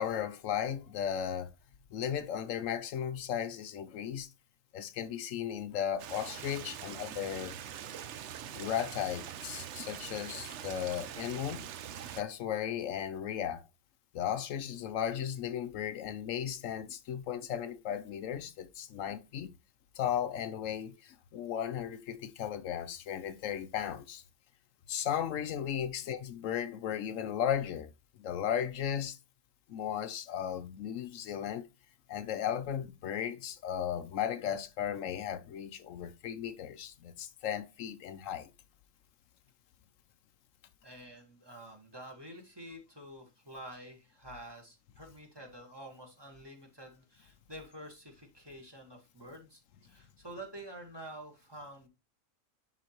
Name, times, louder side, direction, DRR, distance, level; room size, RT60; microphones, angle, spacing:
voice 1, 0.0-1.5 1.9-4.3 4.7-7.5 8.5-11.6 12.1-13.6 14.1-19.5 20.0-24.2 24.9-27.9 28.2-29.2 29.7-31.7 32.1-38.5, left 9 dB, 75° left, 1.0 m, -35 dB
Stream, 6.0-12.2, right 10 dB, 65° right, 0.9 m, -43 dB
voice 2, 40.8-51.9, right 1 dB, 20° right, 1.5 m, -48 dB
11.0 x 3.9 x 2.9 m
omnidirectional pair, 1.4 m